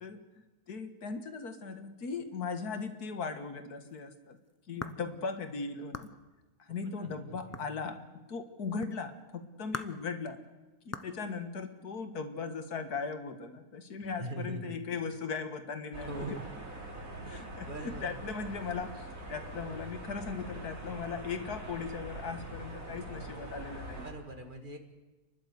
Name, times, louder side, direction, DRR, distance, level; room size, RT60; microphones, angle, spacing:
voice 1, 0.7-4.4 4.7-6.1 6.6-8.0 8.3-10.4 10.9-16.3 17.3-24.1, left 5 dB, 90° left, 8 dB, 2.1 m, -38 dB
sound 1, 3.7-5.2 5.9-6.2 7.5-8.0 8.8-9.0 9.7-10.0 10.9-11.2, left 2 dB, 25° left, 0.3 m, -41 dB
voice 2, 7.0-7.8 14.0-14.7 16.0-16.5 17.2-18.2 24.0-24.8, right 2 dB, 35° right, 5 dB, 1.9 m, -43 dB
sound 2, 15.9-24.1, right 1 dB, 60° right, 3.8 m, -43 dB
29.5 x 11.5 x 8.1 m, 1.1 s
omnidirectional pair, 1.6 m